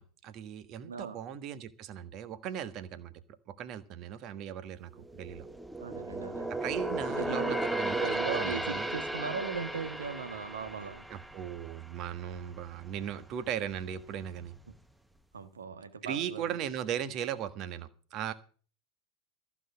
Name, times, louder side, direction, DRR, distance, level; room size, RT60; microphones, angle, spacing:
voice 1, 0.0-3.1 3.5-5.5 6.6-8.0 8.3-8.9 11.1-14.5 16.0-18.3, right 9 dB, 40° right, 13 dB, 1.4 m, -38 dB
voice 2, 0.9-1.2 5.8-6.5 7.1-7.7 8.0-11.0 15.3-16.6, right 5 dB, 75° right, 11 dB, 1.5 m, -38 dB
sound 1, 5.0-12.5 12.9-13.1 13.6-14.4 14.7-14.8, right 1 dB, 5° right, 0.9 m, -35 dB
14.5 x 6.1 x 9.5 m, 0.41 s
figure-of-eight pair, 85°, 0 cm